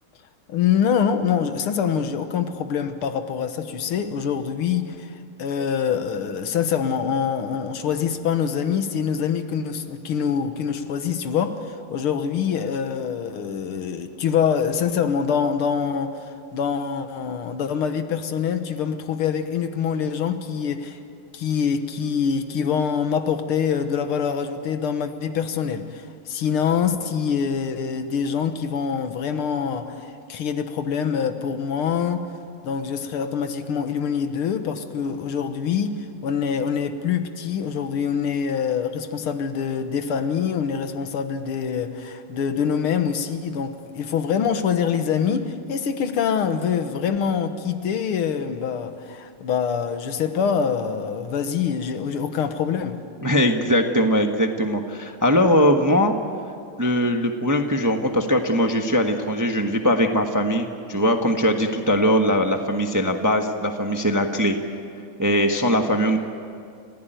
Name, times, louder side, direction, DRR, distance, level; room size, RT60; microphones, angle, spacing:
voice 1, 0.5-21.0 21.3-32.3 32.6-53.0, left 7 dB, 80° left, 2.1 m, -25 dB
voice 2, 53.2-56.1 56.8-64.5 65.2-66.2, equal, 10° right, 0.9 m, -21 dB
29.5 x 16.0 x 9.2 m
omnidirectional pair, 2.4 m